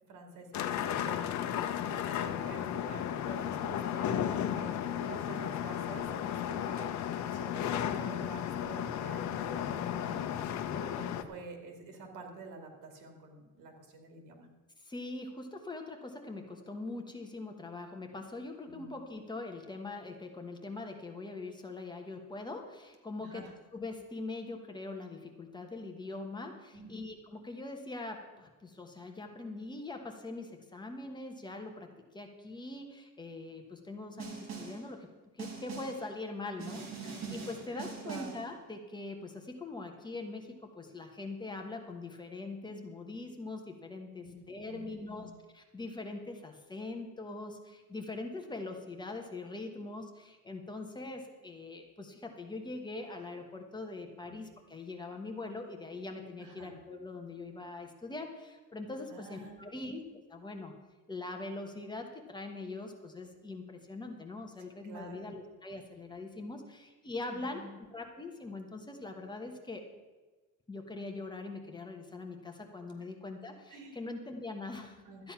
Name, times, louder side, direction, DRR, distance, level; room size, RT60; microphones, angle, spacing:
voice 1, 0.1-1.2 2.0-10.2 10.7-14.5 18.7-18.9 23.2-23.5 26.7-27.0 37.0-37.1 37.7-38.3 44.2-45.3 54.2-54.3 56.4-56.7 59.1-59.6 64.8-65.3 67.3-67.7 73.7-74.0 75.1-75.2, right 3 dB, 90° right, 3 dB, 2.6 m, -48 dB
sound 1, 0.5-11.2, left 10 dB, 65° left, 0.9 m, -34 dB
voice 2, 14.8-23.5 23.7-31.9 32.1-35.1 35.3-60.7 61.1-67.6 67.9-69.9 70.7-75.3, left 2 dB, 15° left, 3 dB, 1.2 m, -42 dB
Snare drum, 34.2-34.9 35.4-36.1 36.6-38.5, right 5 dB, 60° right, 2.9 m, -43 dB
13.0 x 9.4 x 5.8 m, 1.3 s
cardioid pair, 160°, 31 cm